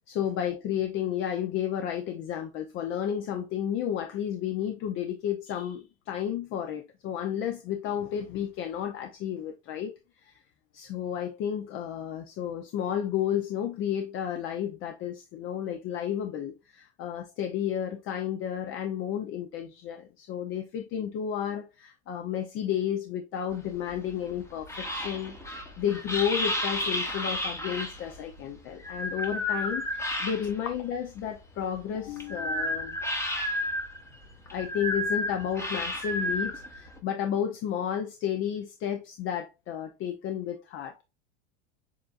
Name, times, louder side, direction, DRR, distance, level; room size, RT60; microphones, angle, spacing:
voice 1, 0.0-9.9 10.2-10.4 10.7-33.0 34.5-41.0, left 9 dB, 35° left, 0.6 m, -32 dB
sound 1, 23.5-30.8 31.2-37.0, left 1 dB, 10° left, 0.9 m, -32 dB
7.3 x 2.6 x 2.4 m
supercardioid pair, 125°, 35 cm